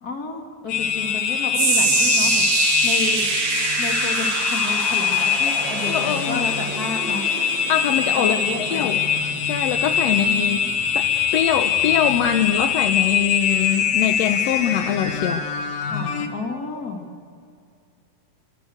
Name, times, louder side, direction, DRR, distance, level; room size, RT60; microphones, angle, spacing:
voice 1, 0.0-2.5 2.8-3.3 3.6-7.2 8.3-9.0 10.1-10.8 15.8-17.1, left 3 dB, 30° left, 2 dB, 2.9 m, -31 dB
sound 1, 0.7-16.3, left 7 dB, 90° left, 3.6 m, -23 dB
sound 2, 1.5-13.9 14.2-14.5 15.2-15.3, right 6 dB, 55° right, 2.9 m, -27 dB
voice 2, 5.9-6.5 7.7-9.0 9.5-10.6 10.9-15.5, left 9 dB, 70° left, 7 dB, 1.6 m, -23 dB
30.0 x 23.5 x 8.1 m, 2.3 s
omnidirectional pair, 3.9 m